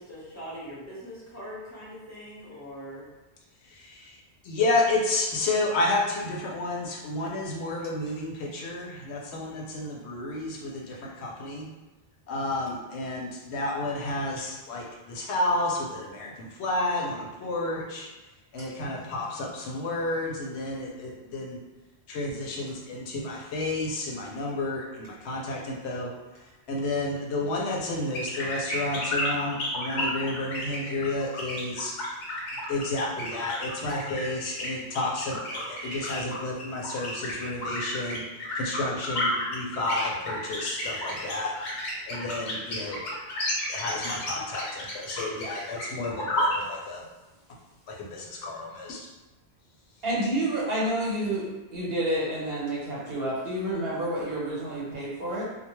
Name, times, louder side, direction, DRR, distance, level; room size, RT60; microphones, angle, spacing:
voice 1, 0.0-3.1, equal, 15° left, -9 dB, 0.7 m, -41 dB
voice 2, 3.6-11.7 12.3-18.1 18.5-21.6 22.1-26.1 26.7-31.9 32.7-38.2 38.5-41.5 42.1-43.0 43.7-47.1 47.9-49.1, left 2 dB, 80° left, -2 dB, 0.9 m, -31 dB
sound 1, 28.1-46.5, left 1 dB, 50° left, 0.7 m, -32 dB
voice 3, 35.8-36.2 50.0-55.4, right 1 dB, 65° right, -6 dB, 1.0 m, -29 dB
2.2 x 2.2 x 2.9 m, 1.1 s
omnidirectional pair, 1.1 m